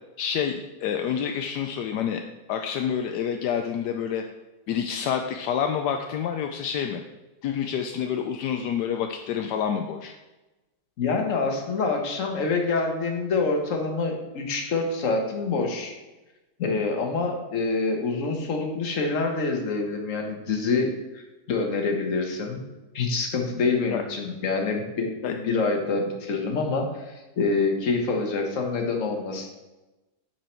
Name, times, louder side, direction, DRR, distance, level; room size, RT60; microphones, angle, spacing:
voice 1, 0.2-2.2 2.5-4.2 4.7-7.0 7.4-10.1 23.9-24.0 25.2-25.3, left 8 dB, 80° left, 5 dB, 1.1 m, -28 dB
voice 2, 11.0-15.9 16.6-21.2 21.5-22.6 22.9-29.5, left 3 dB, 50° left, 3 dB, 1.4 m, -26 dB
8.9 x 4.6 x 4.4 m, 1.1 s
omnidirectional pair, 1.8 m